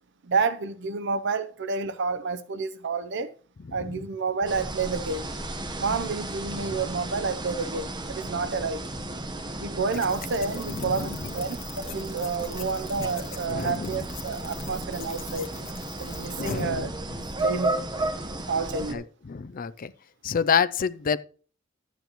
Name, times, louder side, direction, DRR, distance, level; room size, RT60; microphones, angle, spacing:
voice 1, 0.2-3.3 3.7-5.3 5.8-8.9 9.6-15.5 16.0-16.9 17.4-17.9 18.5-19.1, right 4 dB, 60° right, 0.6 m, -29 dB
voice 2, 3.7-4.0 6.5-6.8 10.7-11.3 13.5-14.1 16.4-16.9 17.2-17.3 18.9-19.9 20.2-21.2, left 6 dB, 45° left, 0.4 m, -28 dB
sound 1, 4.5-18.9, right 2 dB, 20° right, 1.0 m, -34 dB
sound 2, 9.9-16.6, left 10 dB, 75° left, 1.5 m, -44 dB
11.5 x 9.1 x 3.0 m
head